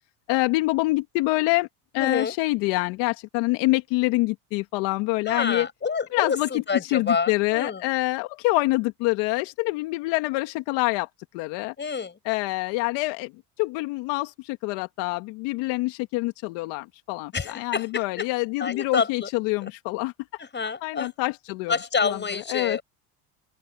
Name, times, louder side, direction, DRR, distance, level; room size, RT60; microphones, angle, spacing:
voice 1, 0.3-1.7 1.9-5.7 6.1-11.1 11.3-11.7 12.2-13.3 13.6-20.1 20.8-21.7 22.0-22.8, left 22 dB, 70° left, 1.7 m, -26 dB
voice 2, 2.0-2.3 5.2-7.8 11.8-12.2 17.3-18.3 18.6-19.3 19.6-19.7 20.4-21.1 21.7-22.8, left 5 dB, 25° left, 6.4 m, -28 dB
open air
supercardioid pair, 100°, 44 cm